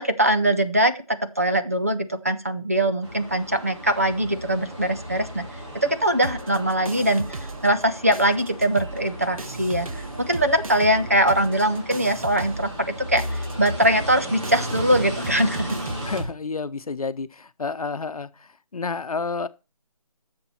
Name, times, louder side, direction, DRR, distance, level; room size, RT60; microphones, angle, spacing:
voice 1, 0.0-5.5 5.7-15.7, right 1 dB, 25° right, 0.5 m, -22 dB
sound 1, 3.0-16.2, equal, 50° right, 4.0 m, -35 dB
sound 2, 6.2-7.9 8.1-16.3, right 3 dB, 65° right, 1.1 m, -36 dB
voice 2, 16.0-19.5, left 4 dB, 75° left, 0.8 m, -30 dB
11.0 x 6.9 x 4.3 m
figure-of-eight pair, 170°, 19 cm